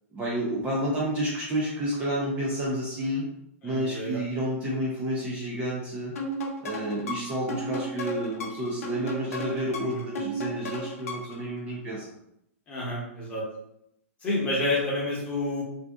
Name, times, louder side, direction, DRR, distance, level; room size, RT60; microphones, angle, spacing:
voice 1, 0.1-3.2 3.6-6.2 6.6-12.1, right 1 dB, 15° right, -6 dB, 0.5 m, -30 dB
voice 2, 3.6-4.2 9.8-10.1 12.7-13.4 14.2-15.6, left 1 dB, 15° left, -5 dB, 0.9 m, -29 dB
sound 1, 6.2-11.4, equal, 80° left, 0.7 m, -34 dB
2.6 x 2.4 x 3.4 m, 0.78 s
hypercardioid pair, 160°, 8 cm